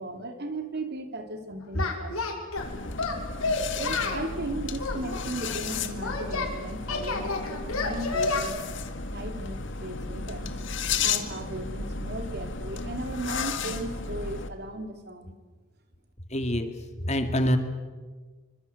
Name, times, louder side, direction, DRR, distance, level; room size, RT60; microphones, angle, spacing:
voice 1, 0.0-2.2 3.7-8.6 9.1-10.6 11.0-15.4, right 1 dB, 50° right, 5 dB, 3.2 m, -36 dB
Singing, 1.8-2.7 3.0-4.3 4.8-6.5 6.9-8.4, left 3 dB, 85° left, 5.9 m, -30 dB
sound 1, 2.6-14.5, left 5 dB, 55° left, 2.2 m, -33 dB
voice 2, 16.3-16.7 17.0-17.6, equal, 30° left, 7 dB, 2.4 m, -25 dB
26.5 x 25.5 x 8.1 m, 1.4 s
head